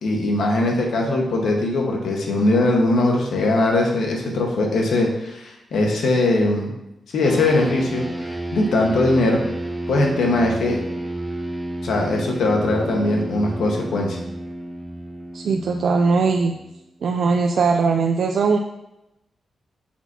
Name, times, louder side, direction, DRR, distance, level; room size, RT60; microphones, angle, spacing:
voice 1, 0.0-6.7 7.1-9.4 9.9-10.8 11.8-14.2, left 2 dB, 85° left, 0 dB, 1.4 m, -20 dB
sound 1, 7.2-17.0, right 1 dB, 5° right, 0.8 m, -31 dB
voice 2, 15.3-16.5 17.0-18.6, right 4 dB, 70° right, 3 dB, 0.4 m, -19 dB
8.1 x 6.0 x 2.9 m, 0.90 s
wide cardioid pair, 125°, 0 cm